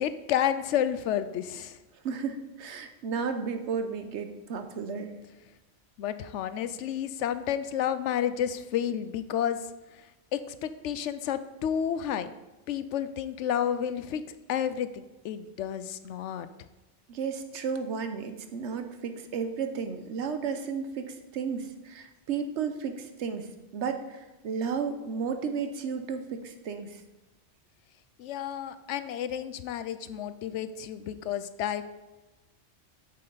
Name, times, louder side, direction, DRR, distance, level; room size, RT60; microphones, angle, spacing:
voice 1, 0.0-1.8 6.0-9.6 10.3-12.3 12.7-14.2 14.5-16.5 28.2-31.8, left 9 dB, 90° left, 12 dB, 0.9 m, -31 dB
voice 2, 2.0-5.1 17.1-23.5 23.7-27.0, right 6 dB, 80° right, 7 dB, 1.1 m, -33 dB
8.4 x 6.6 x 3.9 m, 1.1 s
omnidirectional pair, 1.2 m